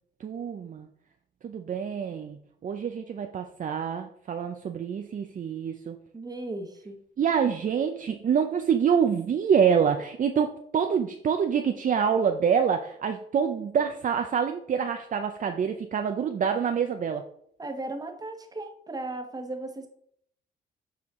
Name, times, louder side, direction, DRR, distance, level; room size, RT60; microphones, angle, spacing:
voice 1, 0.2-0.9 1.4-6.0 7.2-17.2, right 7 dB, 40° right, 6 dB, 0.5 m, -26 dB
voice 2, 6.1-7.0 17.6-19.9, right 2 dB, 20° right, 6 dB, 1.2 m, -36 dB
7.2 x 4.4 x 3.6 m, 0.66 s
cardioid pair, 90°, 20 cm